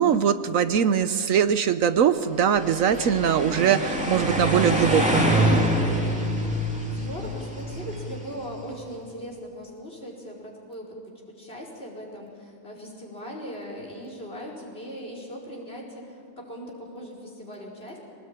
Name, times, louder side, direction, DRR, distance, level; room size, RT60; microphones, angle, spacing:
voice 1, 0.0-5.6, right 8 dB, 70° right, 11 dB, 1.1 m, -22 dB
sound 1, 2.5-8.6, equal, 5° right, 2.9 m, -25 dB
voice 2, 6.9-11.0 11.3-18.0, equal, 40° left, -1 dB, 5.1 m, -39 dB
24.5 x 19.0 x 9.0 m, 2.5 s
omnidirectional pair, 1.5 m